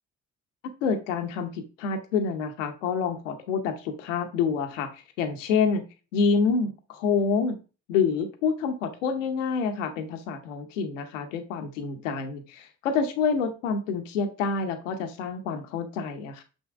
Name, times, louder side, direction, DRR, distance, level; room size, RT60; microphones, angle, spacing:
voice 1, 0.8-5.9 6.1-7.6 7.9-16.4, left 5 dB, 85° left, 7 dB, 0.8 m, -27 dB
6.3 x 6.3 x 4.7 m, 0.34 s
hypercardioid pair, 40°, 36 cm